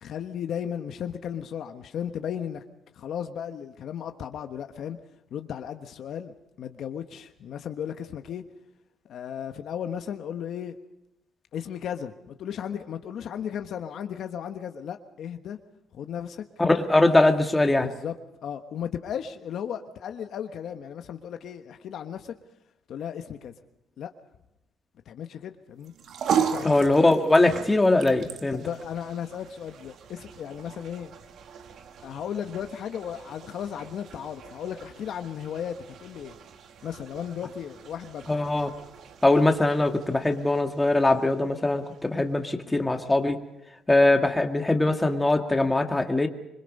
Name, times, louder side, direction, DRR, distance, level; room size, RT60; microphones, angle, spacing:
voice 1, 0.0-2.6 3.0-5.0 5.3-8.4 9.0-10.8 11.5-15.6 15.9-16.4 17.8-18.1 18.4-22.3 22.9-23.5 24.0-24.1 25.1-25.9 26.5-26.7 28.5-31.1 32.0-36.4 36.8-38.3, left 8 dB, 70° left, 7 dB, 1.2 m, -35 dB
voice 2, 16.6-17.9 26.6-28.6 38.3-38.7 39.2-43.4 43.9-46.3, left 2 dB, 15° left, 5 dB, 2.0 m, -21 dB
sound 1, 25.8-42.3, right 7 dB, 70° right, 1.6 m, -37 dB
26.0 x 21.5 x 5.4 m, 0.87 s
cardioid pair, 90°, 0 cm